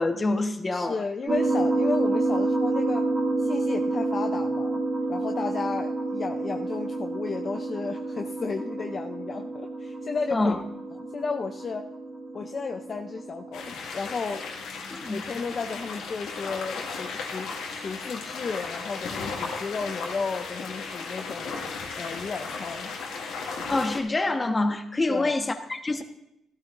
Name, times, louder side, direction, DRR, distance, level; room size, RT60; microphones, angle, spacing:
voice 1, 0.0-1.0 10.3-10.6 14.9-15.2 23.7-26.0, left 2 dB, 25° left, 6 dB, 1.2 m, -26 dB
voice 2, 0.7-3.1 3.4-10.6 11.1-11.9 12.3-14.4 15.1-21.6 22.0-22.9 25.1-25.4, left 4 dB, 40° left, 4 dB, 0.6 m, -33 dB
sound 1, 1.3-13.7, right 2 dB, 40° right, 2.7 m, -29 dB
sound 2, 13.5-24.0, left 4 dB, 85° left, 1.9 m, -35 dB
16.5 x 12.5 x 2.6 m, 0.83 s
cardioid pair, 90°, 0 cm